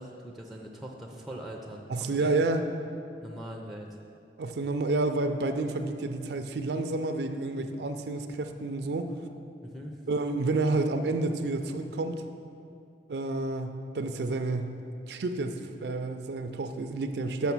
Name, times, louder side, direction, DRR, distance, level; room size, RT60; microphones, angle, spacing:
voice 1, 0.0-2.4 3.2-3.9 9.6-9.9, right 1 dB, ahead, 0 dB, 0.5 m, -42 dB
voice 2, 1.9-2.6 4.4-9.1 10.1-12.2 13.1-14.7 15.1-17.5, right 2 dB, 70° right, 7 dB, 0.4 m, -30 dB
6.9 x 5.7 x 6.0 m, 2.5 s
head